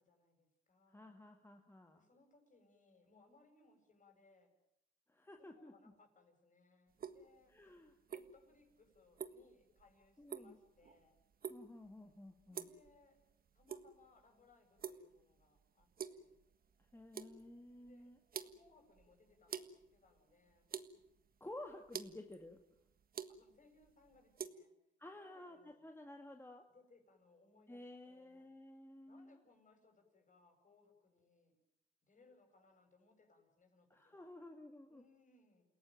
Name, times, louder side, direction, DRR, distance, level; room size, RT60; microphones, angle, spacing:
voice 1, 0.0-1.2 1.9-4.5 5.4-11.2 12.5-13.2 13.5-16.4 17.7-18.1 18.4-20.7 23.3-24.7 25.2-25.8 26.7-28.5 29.1-31.6 32.0-34.4 34.9-35.7, left 3 dB, 40° left, 4 dB, 7.8 m, -69 dB
voice 2, 0.9-2.0 5.1-5.7 7.5-8.0 10.2-10.6 11.5-12.7 16.9-18.2 21.4-22.6 25.0-26.7 27.7-29.4 33.9-35.0, left 1 dB, 10° left, 4 dB, 2.1 m, -53 dB
sound 1, 6.9-24.5, right 7 dB, 50° right, 1.6 m, -50 dB
29.0 x 17.5 x 9.2 m, 0.79 s
cardioid pair, 90°, 20 cm